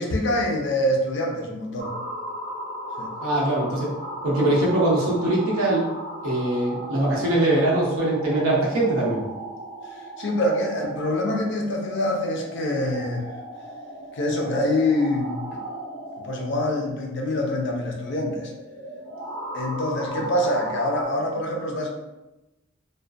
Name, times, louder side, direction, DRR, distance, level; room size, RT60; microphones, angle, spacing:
voice 1, 0.0-1.9 3.0-3.1 10.2-13.2 14.1-15.4 16.2-18.5 19.5-21.9, left 1 dB, 55° left, 1 dB, 0.4 m, -25 dB
sound 1, 1.8-21.0, right 1 dB, 45° right, 0.6 m, -37 dB
voice 2, 3.2-3.9 4.2-5.8 6.2-9.2, right 1 dB, 75° right, -5 dB, 0.8 m, -22 dB
2.3 x 2.1 x 2.5 m, 1.0 s
head